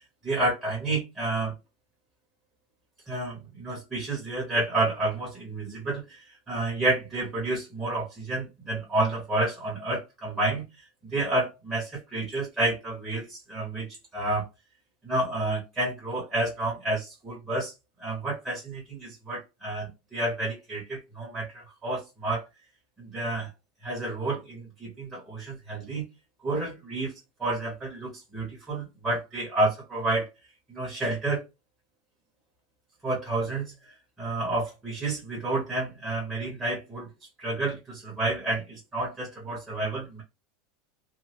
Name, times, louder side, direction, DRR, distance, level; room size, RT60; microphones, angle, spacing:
voice 1, 0.2-1.5 3.1-10.6 11.1-14.5 15.0-17.7 18.0-22.4 23.0-23.5 23.8-26.0 26.4-27.1 27.4-30.3 30.7-31.4 33.0-33.7 34.2-37.1 37.4-40.2, right 2 dB, 5° right, 0.9 m, -30 dB
3.0 x 2.1 x 2.9 m
supercardioid pair, 170°, 0 cm